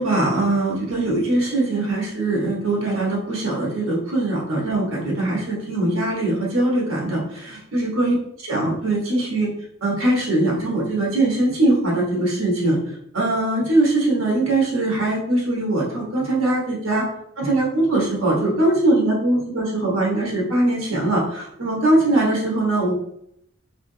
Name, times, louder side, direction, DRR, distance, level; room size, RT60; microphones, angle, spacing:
voice 1, 0.0-8.1 8.4-9.5 9.8-12.8 13.1-17.1 17.4-22.9, right 2 dB, 85° right, -3 dB, 1.3 m, -21 dB
3.4 x 2.8 x 2.7 m, 0.73 s
head